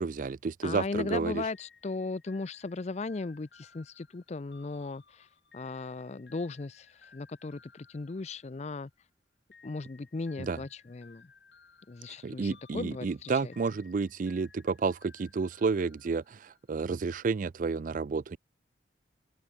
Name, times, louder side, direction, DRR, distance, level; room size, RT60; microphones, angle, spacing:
voice 1, 0.0-1.5 10.4-10.6 12.1-18.4, right 4 dB, 50° right, 0.4 m, -31 dB
voice 2, 0.6-5.3 5.5-8.9 9.6-11.3 11.9-13.5, left 3 dB, 40° left, 0.5 m, -37 dB
sound 1, 1.5-8.9 9.5-16.8, left 5 dB, 70° left, 5.5 m, -60 dB
open air
head